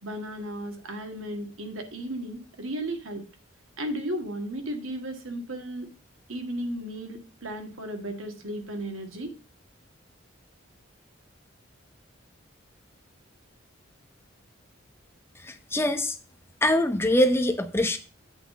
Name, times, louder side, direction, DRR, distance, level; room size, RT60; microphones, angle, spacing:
voice 1, 0.0-3.2 3.8-5.9 6.3-9.3, right 1 dB, 85° right, 5 dB, 1.7 m, -34 dB
voice 2, 15.7-16.1 16.6-18.0, left 1 dB, 10° left, 7 dB, 0.6 m, -23 dB
8.2 x 4.1 x 6.6 m, 0.35 s
head